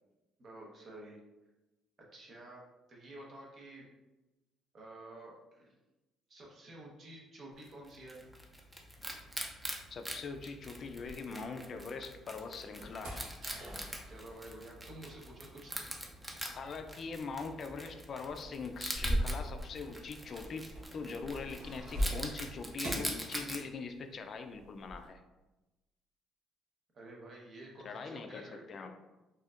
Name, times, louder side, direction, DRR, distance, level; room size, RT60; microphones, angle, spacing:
voice 1, 0.4-1.2 2.1-3.9 4.7-5.7 6.3-8.2 14.1-15.9 26.9-28.6, right 1 dB, 45° right, -2 dB, 1.0 m, -50 dB
Wild animals, 7.6-23.6, right 1 dB, 10° right, 0.5 m, -44 dB
sound 1, 9.0-11.8 12.2-24.0 24.3-25.1, equal, 65° right, 1.2 m, -41 dB
voice 2, 9.9-13.3 16.4-25.2 27.8-28.4 28.7-28.9, left 4 dB, 45° left, 7 dB, 0.4 m, -42 dB
4.2 x 2.7 x 2.5 m, 1.1 s
cardioid pair, 100°, 0 cm